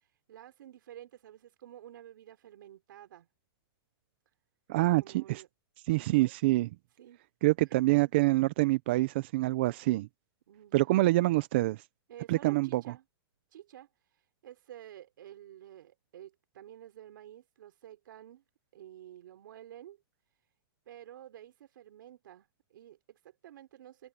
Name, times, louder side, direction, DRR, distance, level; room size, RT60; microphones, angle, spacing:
voice 1, 0.3-3.3 5.0-5.5 5.9-6.3 7.0-7.2 7.7-8.1 10.5-11.0 12.1-13.0 13.5-13.9 14.4-18.4 18.7-20.0 20.9-24.1, right 12 dB, 55° right, 4.3 m, -51 dB
voice 2, 4.7-5.4 5.9-6.7 7.4-10.1 10.7-11.8 12.3-12.8, right 19 dB, 25° right, 0.4 m, -26 dB
hypercardioid pair, 175°, 13 cm